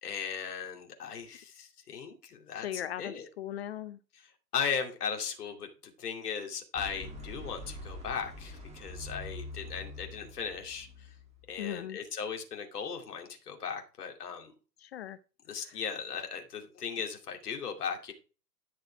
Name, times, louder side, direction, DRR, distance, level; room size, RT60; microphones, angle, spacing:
voice 1, 0.0-3.3 4.1-11.1 11.5-14.5 15.5-18.1, left 6 dB, 65° left, 3 dB, 2.6 m, -37 dB
voice 2, 2.6-4.0 11.6-12.0 14.8-15.2, left 11 dB, 40° left, 15 dB, 0.6 m, -38 dB
sound 1, 6.7-11.8, left 1 dB, 15° right, 1.7 m, -45 dB
11.0 x 6.3 x 4.5 m, 0.35 s
hypercardioid pair, 120°, 49 cm